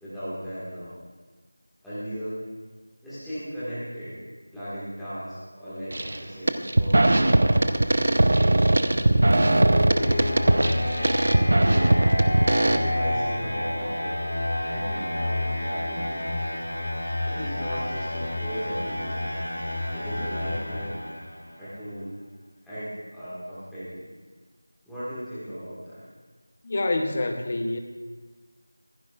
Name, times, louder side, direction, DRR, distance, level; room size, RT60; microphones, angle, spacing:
voice 1, 0.0-1.0 1.8-2.4 3.0-4.2 4.5-7.3 8.0-8.8 9.2-10.4 11.5-12.0 12.6-16.2 17.2-19.2 19.9-21.0 21.6-22.2 22.6-24.1 24.9-26.0, equal, ahead, -17 dB, 2.0 m, -36 dB
sound 1, 5.9-6.2 6.5-12.8, right 1 dB, 45° right, 0.8 m, -20 dB
sound 2, 8.7-21.5, left 1 dB, 55° left, 4.9 m, -30 dB
voice 2, 26.6-27.8, left 2 dB, 25° left, 5 dB, 0.8 m, -26 dB
25.5 x 10.5 x 2.5 m, 1.4 s
figure-of-eight pair, 175°, 0 cm